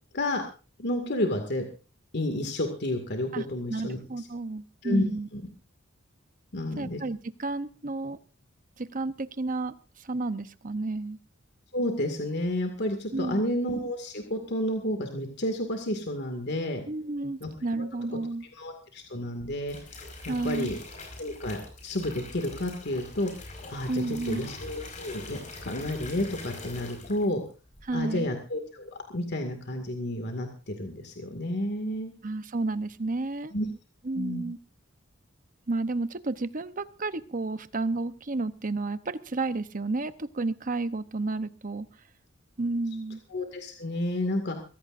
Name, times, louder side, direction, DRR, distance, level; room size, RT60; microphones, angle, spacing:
voice 1, 0.8-1.6 2.1-4.0 4.8-5.1 5.3-5.4 6.5-7.0 11.7-16.8 17.4-17.5 18.6-20.8 21.2-23.3 23.7-27.4 27.9-32.1 33.5-33.7 34.2-34.5 43.3-44.6, left 1 dB, 55° left, 4 dB, 2.2 m, -31 dB
voice 2, 3.3-5.3 6.8-8.2 8.8-11.2 13.1-13.6 16.9-18.5 20.3-20.7 23.9-24.5 27.8-28.3 32.2-33.5 34.0-34.6 35.7-41.9 42.6-43.2, right 2 dB, 40° right, 12 dB, 0.9 m, -31 dB
sound 1, 19.4-27.4 27.7-28.1, left 3 dB, 40° left, 5.3 m, -43 dB
23.0 x 16.0 x 2.6 m, 0.35 s
head